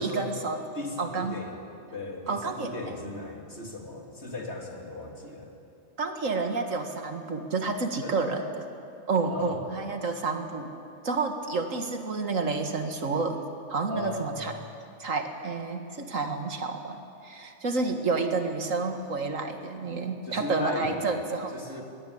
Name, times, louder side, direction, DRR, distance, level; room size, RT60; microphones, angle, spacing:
voice 1, 0.0-0.6 1.0-1.4 2.3-2.7 6.0-8.4 9.1-10.7 11.0-13.4 13.7-14.5 15.0-21.5, right 4 dB, 90° right, 5 dB, 2.2 m, -30 dB
voice 2, 0.7-5.5 8.0-8.4 9.3-9.7 13.9-14.6 20.2-21.2 21.5-21.8, left 2 dB, 55° left, 1 dB, 3.3 m, -37 dB
23.0 x 20.5 x 8.7 m, 2.5 s
omnidirectional pair, 1.3 m